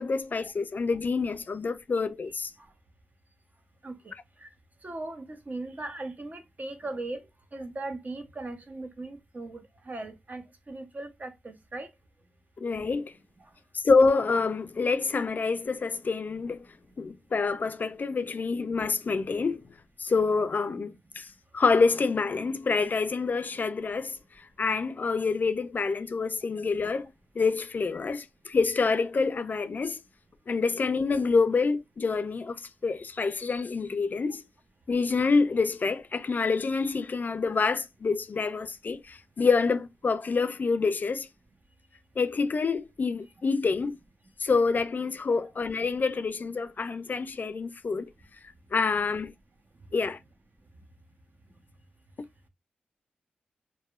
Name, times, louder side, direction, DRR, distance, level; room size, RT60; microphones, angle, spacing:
voice 1, 0.0-2.5 12.6-13.1 13.8-16.7 17.0-19.6 20.0-21.3 21.5-27.1 27.4-30.0 30.5-34.4 34.9-41.3 42.2-43.9 44.4-48.1 48.7-49.3 49.9-50.2, left 4 dB, 50° left, 0.3 m, -27 dB
voice 2, 4.8-7.2 7.5-11.9 45.3-45.5, right 2 dB, 45° right, 0.7 m, -38 dB
2.7 x 2.1 x 2.3 m
supercardioid pair, 40°, 4 cm